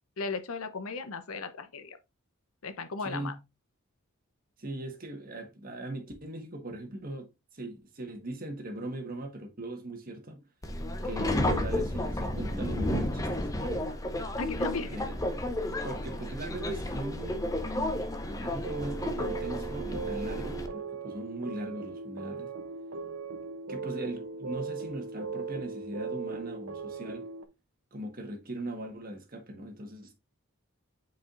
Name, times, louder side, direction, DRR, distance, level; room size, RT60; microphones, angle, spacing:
voice 1, 0.2-2.0 2.6-3.3 14.4-15.0, left 4 dB, 80° left, 0.8 m, -36 dB
voice 2, 3.0-3.4 4.6-10.4 11.0-13.5 14.8-15.5 15.8-17.5 18.3-22.5 23.7-27.3 27.9-30.1, right 1 dB, 40° right, 1.5 m, -40 dB
Subway metro underground, 10.6-20.7, left 1 dB, 15° left, 0.7 m, -32 dB
sound 1, 18.6-27.4, right 5 dB, 65° right, 0.6 m, -38 dB
8.2 x 4.9 x 2.5 m
head